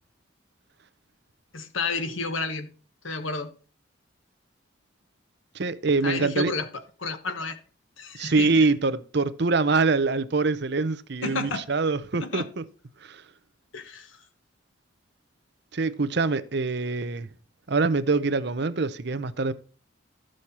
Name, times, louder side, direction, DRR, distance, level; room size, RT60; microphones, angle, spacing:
voice 1, 1.5-2.7 3.0-3.5 6.0-7.6 8.0-8.7 11.2-11.6 12.2-12.4 13.7-14.2, left 4 dB, 90° left, 1.3 m, -31 dB
voice 2, 5.5-6.5 8.1-12.6 13.0-13.2 15.7-17.3 17.7-19.5, right 3 dB, 60° right, 0.7 m, -24 dB
13.5 x 6.4 x 4.3 m
head